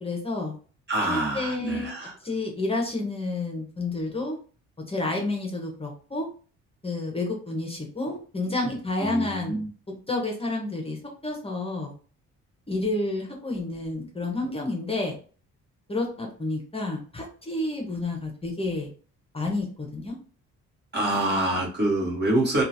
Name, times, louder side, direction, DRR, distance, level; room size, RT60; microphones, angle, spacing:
voice 1, 0.0-0.5 1.1-1.9 2.2-4.4 4.9-6.3 6.8-9.6 10.1-11.9 12.7-15.1 15.9-18.9 19.3-20.2, left 2 dB, 20° left, 0 dB, 0.8 m, -30 dB
voice 2, 0.9-2.2 9.0-9.7 20.9-22.6, right 2 dB, 35° right, -1 dB, 1.2 m, -26 dB
2.9 x 2.3 x 2.6 m, 0.40 s
cardioid pair, 90°, 30 cm